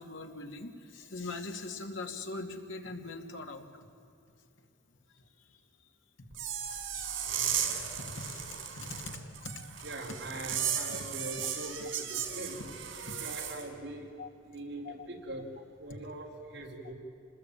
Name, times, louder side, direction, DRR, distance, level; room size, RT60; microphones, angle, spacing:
voice 1, 0.0-3.9 5.1-5.2 6.9-7.1 8.0-9.5 9.8-9.9 10.9-11.0 13.1-13.2 14.2-14.3 14.8-15.1, left 3 dB, 85° left, 4 dB, 2.4 m, -42 dB
sound 1, 6.3-13.6, right 8 dB, 90° right, 4.1 m, -36 dB
voice 2, 9.8-14.2 14.5-15.5 15.8-16.9, right 2 dB, 65° right, 0 dB, 4.4 m, -42 dB
27.5 x 20.0 x 9.1 m, 2.6 s
head